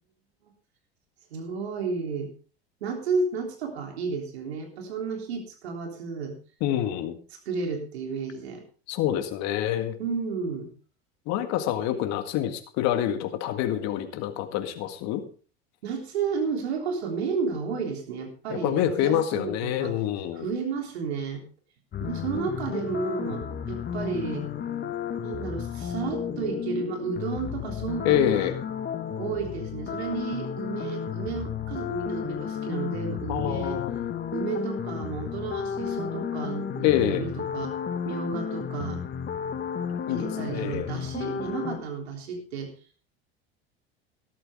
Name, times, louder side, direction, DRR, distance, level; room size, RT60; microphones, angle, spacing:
voice 1, 1.3-2.3 2.8-6.4 7.3-8.6 10.0-10.7 15.8-20.0 20.3-21.4 22.0-24.5 25.2-28.5 29.2-33.8 34.3-37.7 38.1-39.0 40.1-42.7, right 5 dB, 80° right, 3 dB, 3.5 m, -32 dB
voice 2, 6.6-7.1 8.9-9.9 11.3-15.2 18.5-20.5 28.1-28.5 33.3-34.1 36.8-37.2 40.1-40.9, left 11 dB, 55° left, 7 dB, 1.9 m, -26 dB
sound 1, 21.9-41.8, left 8 dB, 35° left, 1.6 m, -33 dB
13.5 x 12.5 x 3.6 m, 0.40 s
hypercardioid pair, 85°, 31 cm